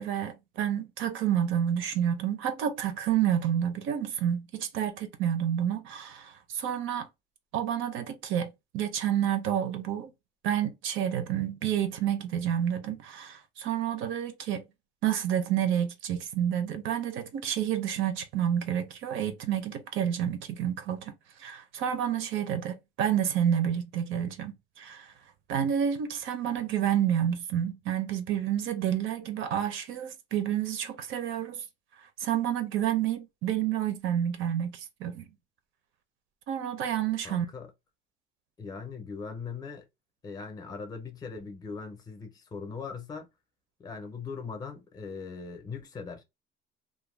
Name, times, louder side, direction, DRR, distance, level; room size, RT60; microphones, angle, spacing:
voice 1, 0.0-7.1 7.5-10.1 10.4-14.6 15.0-21.1 21.4-25.1 25.5-31.6 32.2-35.2 36.5-37.5, right 9 dB, 75° right, 0.6 m, -29 dB
voice 2, 37.2-37.7 38.6-39.9 40.2-43.3 43.8-46.2, left 5 dB, 20° left, 0.5 m, -40 dB
2.5 x 2.1 x 3.1 m
cardioid pair, 180°, 20 cm